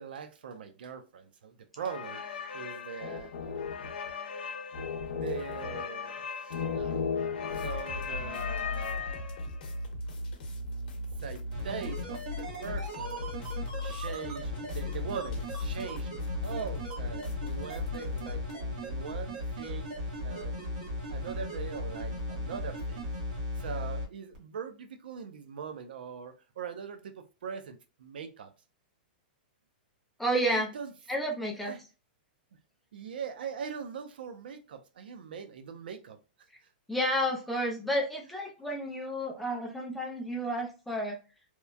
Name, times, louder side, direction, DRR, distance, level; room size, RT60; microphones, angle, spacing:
voice 1, 0.0-3.3 5.1-7.1 7.5-9.3 11.2-13.3 13.8-16.1 16.4-19.9 20.2-20.6 21.1-23.1 23.6-28.5 30.5-30.9 31.6-31.8 32.9-36.2, right 6 dB, 75° right, 0.5 m, -41 dB
sound 1, 1.8-9.7, left 6 dB, 85° left, 0.5 m, -36 dB
sound 2, 7.5-18.5, left 3 dB, 60° left, 0.9 m, -38 dB
sound 3, 11.5-24.0 24.3-24.4, left 1 dB, 50° right, 1.1 m, -37 dB
voice 2, 30.2-30.7 31.1-31.7 36.9-41.2, equal, ahead, 0.4 m, -31 dB
2.9 x 2.1 x 2.3 m
supercardioid pair, 175°, 5 cm